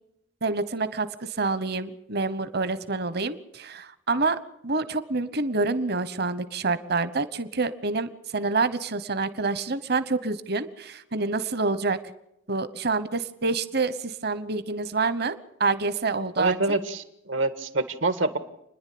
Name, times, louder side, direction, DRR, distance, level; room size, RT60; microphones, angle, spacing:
voice 1, 0.4-12.0 12.5-16.6, right 3 dB, 55° right, 13 dB, 1.1 m, -27 dB
voice 2, 16.4-18.4, right 2 dB, 85° right, 9 dB, 1.8 m, -26 dB
29.0 x 10.5 x 8.6 m, 0.83 s
head